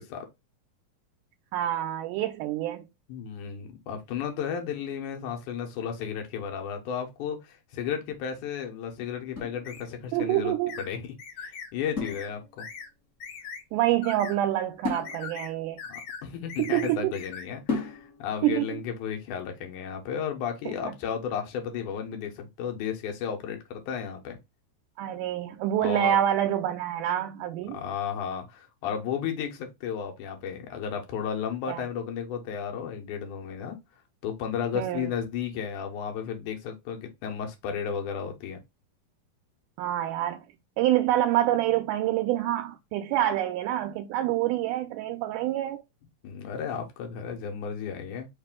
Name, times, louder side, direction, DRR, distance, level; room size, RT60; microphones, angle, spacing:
voice 1, 1.5-2.9 10.1-10.7 13.7-15.8 16.6-17.1 18.4-18.7 20.7-20.8 25.0-27.8 31.7-31.8 34.8-35.1 39.8-40.5 40.8-45.8, right 13 dB, 90° right, 2.1 m, -26 dB
voice 2, 3.1-12.7 15.9-24.4 25.8-26.2 27.7-33.8 34.2-38.6 46.2-48.3, left 7 dB, 85° left, 2.3 m, -33 dB
sound 1, 9.4-10.3 12.0-12.9 14.8-16.8 17.7-18.4, left 3 dB, 45° left, 1.0 m, -36 dB
sound 2, 9.6-9.9 10.7-10.9 11.2-11.7 12.0-12.3 12.6-12.9 13.2-13.6 14.0-14.4 14.9-15.5 15.8-16.2 16.5-17.5, left 6 dB, 65° left, 2.0 m, -40 dB
5.2 x 2.4 x 3.5 m
omnidirectional pair, 3.5 m